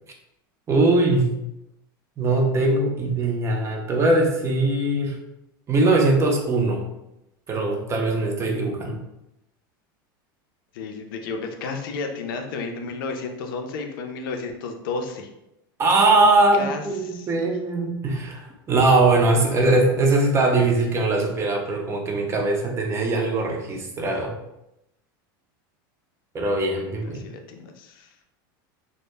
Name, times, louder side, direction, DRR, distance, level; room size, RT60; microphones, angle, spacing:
voice 1, 0.7-1.3 2.2-5.2 5.7-6.9 7.5-9.0 15.8-24.3 26.3-27.3, right 2 dB, 25° right, 1 dB, 0.5 m, -21 dB
voice 2, 10.7-15.3 16.5-17.5 27.0-28.2, left 4 dB, 80° left, 4 dB, 0.4 m, -32 dB
2.1 x 2.0 x 3.2 m, 0.88 s
supercardioid pair, 115°, 11 cm